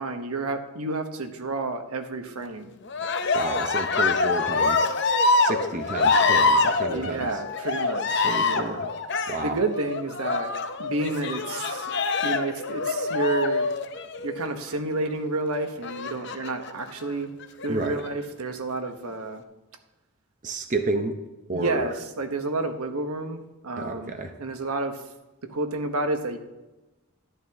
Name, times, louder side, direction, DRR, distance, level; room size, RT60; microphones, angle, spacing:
voice 1, 0.0-2.7 6.9-8.8 9.4-10.5 10.8-11.9 12.2-13.7 14.2-17.3 17.6-19.4 21.5-24.1 24.4-25.0 25.5-26.4, right 2 dB, 85° right, 7 dB, 1.1 m, -30 dB
Cheering, 2.9-14.6 15.8-16.7 17.4-18.1, left 3 dB, 50° left, 0.7 m, -25 dB
voice 2, 3.3-4.9 5.4-7.3 8.2-8.9 9.3-9.6 17.7-18.0 20.4-21.2 21.5-21.9 23.8-24.3, right 2 dB, 35° right, 5 dB, 0.7 m, -30 dB
11.5 x 11.0 x 3.5 m, 1.1 s
head